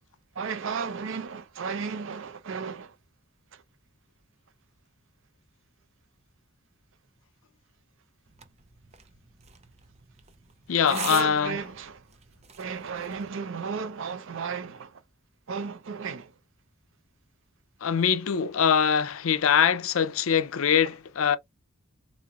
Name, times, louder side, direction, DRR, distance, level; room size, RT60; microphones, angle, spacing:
voice 1, 0.4-2.9 10.9-12.0 12.6-14.9 15.5-16.3, right 5 dB, 70° right, 0.6 m, -34 dB
sound 1, 8.3-13.3, right 7 dB, 35° right, 0.6 m, -43 dB
voice 2, 10.7-11.6 17.8-21.4, left 7 dB, 85° left, 0.5 m, -23 dB
4.0 x 3.0 x 2.4 m
head